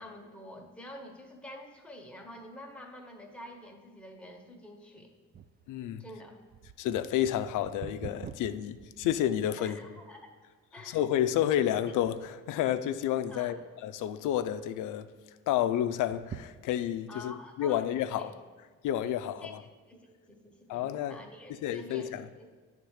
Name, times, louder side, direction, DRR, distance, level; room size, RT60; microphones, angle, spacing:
voice 1, 0.0-5.1 6.0-6.4 9.6-10.4 10.7-11.0 13.3-13.6 17.1-17.9 18.2-18.3 19.4-19.5 19.9-22.5, left 1 dB, 5° left, 1.3 m, -48 dB
sound 1, 5.3-9.8 10.4-10.5 11.2-11.4 11.8-12.4 12.9-13.6 14.0-14.1 14.4-14.5 16.0-17.1 17.7-17.8, right 8 dB, 35° right, 0.4 m, -47 dB
voice 2, 5.7-6.0 6.8-9.8 10.8-13.6 13.8-15.1 15.5-18.3 18.8-19.6 20.7-21.2 21.5-22.3, left 11 dB, 85° left, 0.5 m, -30 dB
10.0 x 3.6 x 6.4 m
cardioid pair, 90°, 30 cm